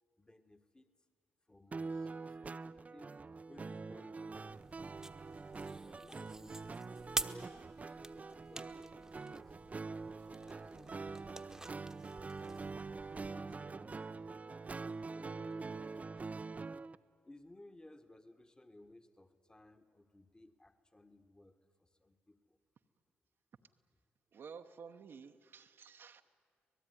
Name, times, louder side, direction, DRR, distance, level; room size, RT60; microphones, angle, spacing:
voice 1, 0.2-0.9 1.5-3.2 3.5-4.7 5.1-6.8 7.2-12.6 13.2-14.3 15.1-16.4 17.2-22.6, left 1 dB, 20° left, 7 dB, 1.6 m, -60 dB
sound 1, 1.7-16.9, right 4 dB, 35° right, 0.6 m, -45 dB
sound 2, 4.5-13.3, right 2 dB, 10° right, 1.2 m, -47 dB
voice 2, 24.3-26.2, right 6 dB, 65° right, 5 dB, 0.9 m, -52 dB
26.0 x 18.5 x 9.8 m, 2.1 s
supercardioid pair, 60°, 4 cm